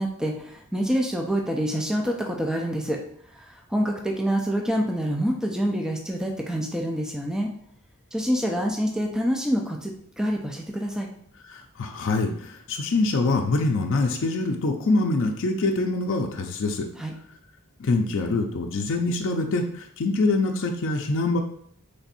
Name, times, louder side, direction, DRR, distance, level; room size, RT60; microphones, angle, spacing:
voice 1, 0.0-3.0 3.3-7.5 8.1-11.1 17.0-17.1, equal, 5° right, 0 dB, 0.3 m, -26 dB
voice 2, 11.5-16.9 17.8-21.4, left 3 dB, 60° left, 3 dB, 0.5 m, -24 dB
3.3 x 2.6 x 4.0 m, 0.65 s
head